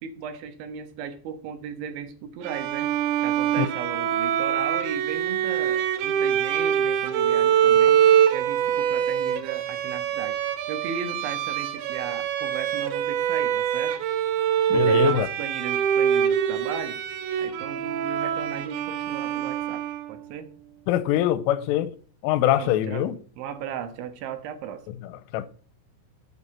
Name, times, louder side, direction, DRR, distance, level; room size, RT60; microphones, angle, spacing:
voice 1, 0.0-2.9 3.2-8.0 8.3-10.4 10.7-14.0 14.7-17.0 17.4-19.8 20.1-20.5 22.4-23.1 23.4-24.8, right 8 dB, 70° right, 3.4 m, -36 dB
Bowed string instrument, 2.4-20.3, right 9 dB, 90° right, 3.9 m, -24 dB
voice 2, 14.7-15.3 20.9-21.9 22.2-23.2 25.0-25.5, left 12 dB, 85° left, 3.2 m, -23 dB
11.5 x 8.5 x 4.4 m
omnidirectional pair, 5.8 m